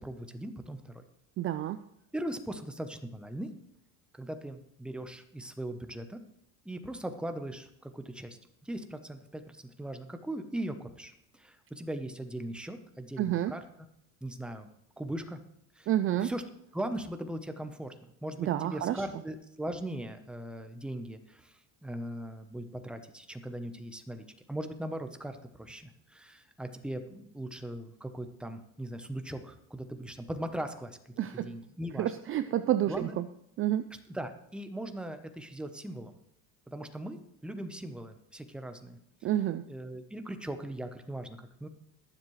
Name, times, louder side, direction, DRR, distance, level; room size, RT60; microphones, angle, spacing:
voice 1, 0.0-1.0 2.1-3.5 4.1-6.2 6.6-13.6 14.2-14.7 15.0-15.4 15.7-16.4 16.7-17.9 18.2-31.0 31.3-32.5 32.9-33.1 34.1-36.2 36.7-39.0 39.7-41.7, right 1 dB, 5° right, 7 dB, 0.8 m, -39 dB
voice 2, 1.4-1.8 13.2-13.5 15.9-16.3 18.4-19.0 31.2-31.5 32.0-33.3 33.6-33.8 39.2-39.6, right 12 dB, 35° right, 12 dB, 0.4 m, -29 dB
21.5 x 7.4 x 3.2 m, 0.77 s
cardioid pair, 125°, 36 cm